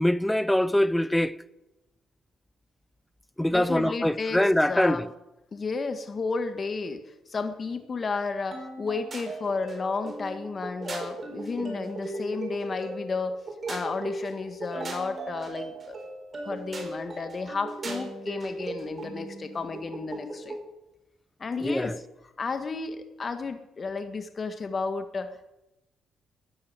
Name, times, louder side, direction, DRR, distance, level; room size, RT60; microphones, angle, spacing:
voice 1, 0.0-1.3 3.4-5.1 21.6-22.0, left 1 dB, 5° left, 0.6 m, -23 dB
voice 2, 3.5-4.4 4.7-5.0 5.5-7.0 7.3-13.4 13.7-16.0 16.5-20.6 21.4-22.0 22.4-25.5, left 4 dB, 40° left, 1.7 m, -32 dB
sound 1, 8.5-20.7, right 2 dB, 35° right, 4.5 m, -37 dB
14.0 x 10.5 x 9.4 m
cardioid pair, 80°, 0 cm